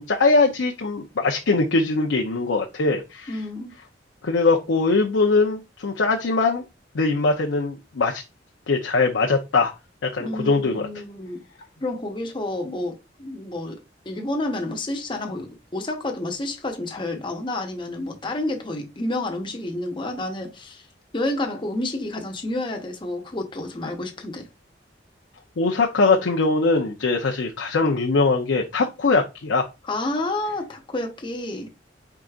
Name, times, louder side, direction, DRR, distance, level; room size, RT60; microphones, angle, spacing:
voice 1, 0.0-3.3 4.2-6.6 6.9-8.2 8.7-9.7 10.0-10.9 25.6-29.7, left 3 dB, 90° left, 0.6 m, -21 dB
voice 2, 3.3-3.7 10.2-11.4 11.8-13.8 14.0-20.8 21.1-24.5 29.9-31.7, left 2 dB, 25° left, 0.8 m, -29 dB
4.7 x 3.8 x 2.4 m
head